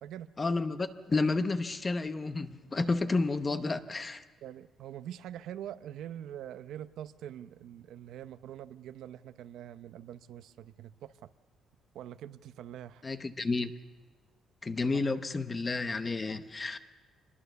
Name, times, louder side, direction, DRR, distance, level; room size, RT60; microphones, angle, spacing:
voice 1, 0.4-4.2 13.0-13.7 14.6-16.8, left 3 dB, 20° left, 10 dB, 0.9 m, -31 dB
voice 2, 4.4-11.1 11.9-13.0, right 11 dB, 75° right, 12 dB, 0.8 m, -44 dB
26.0 x 21.0 x 6.9 m, 1.4 s
cardioid pair, 180°, 0 cm